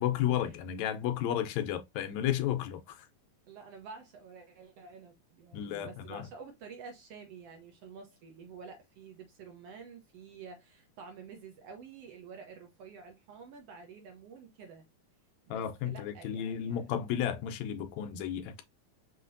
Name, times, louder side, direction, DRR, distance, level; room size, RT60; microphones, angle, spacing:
voice 1, 0.0-3.1 5.5-6.3 15.5-18.6, left 10 dB, 75° left, 1.8 m, -33 dB
voice 2, 3.5-14.8 15.5-16.8, right 5 dB, 65° right, 1.6 m, -49 dB
5.7 x 2.9 x 2.6 m
omnidirectional pair, 3.5 m